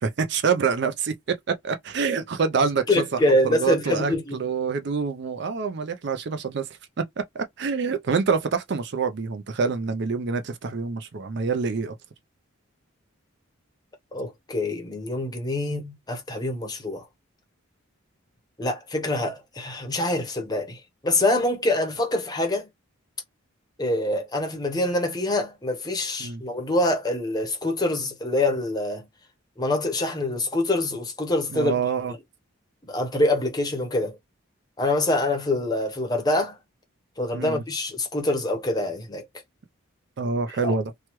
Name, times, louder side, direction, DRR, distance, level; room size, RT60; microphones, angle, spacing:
voice 1, 0.0-6.7 7.0-7.1 7.3-12.0 26.2-26.4 31.5-32.1 37.3-37.6 40.2-40.9, right 5 dB, 55° right, 0.4 m, -26 dB
voice 2, 2.9-4.4 14.1-17.0 18.6-22.7 23.8-29.1 29.6-31.7 32.8-34.2 34.8-36.6 37.2-39.3 40.6-40.7, left 1 dB, 20° left, 0.7 m, -25 dB
3.1 x 2.2 x 3.0 m
head